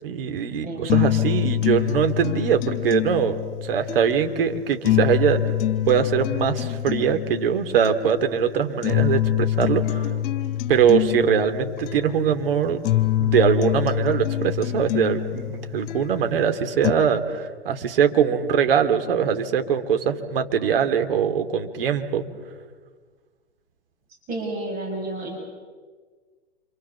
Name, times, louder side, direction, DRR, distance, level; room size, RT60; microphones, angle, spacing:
voice 1, 0.0-5.5 5.9-10.1 10.7-12.8 13.2-22.3, right 8 dB, 55° right, 6 dB, 3.1 m, -22 dB
sound 1, 0.9-16.9, left 12 dB, 40° left, 4.1 m, -25 dB
voice 2, 24.3-25.4, right 2 dB, 25° right, 0 dB, 7.3 m, -30 dB
28.5 x 28.5 x 7.1 m, 1.5 s
figure-of-eight pair, 110°, 33 cm